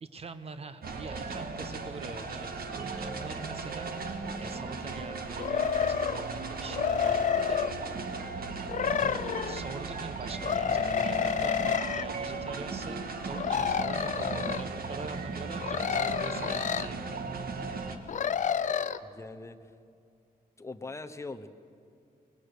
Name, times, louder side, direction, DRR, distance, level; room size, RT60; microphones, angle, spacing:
voice 1, 0.0-7.7 8.8-17.2, right 4 dB, 40° right, 11 dB, 1.0 m, -44 dB
sound 1, 0.8-18.0, right 4 dB, 65° right, 1.6 m, -37 dB
sound 2, 5.4-6.3 6.7-7.7 8.7-9.6 10.4-12.1 13.3-14.6 15.6-16.9 18.1-19.0, left 8 dB, 50° left, 0.5 m, -29 dB
voice 2, 17.6-17.9 19.0-19.6 20.6-21.5, left 3 dB, 15° left, 7 dB, 0.8 m, -42 dB
25.0 x 20.0 x 6.7 m, 2.4 s
wide cardioid pair, 170°, 16 cm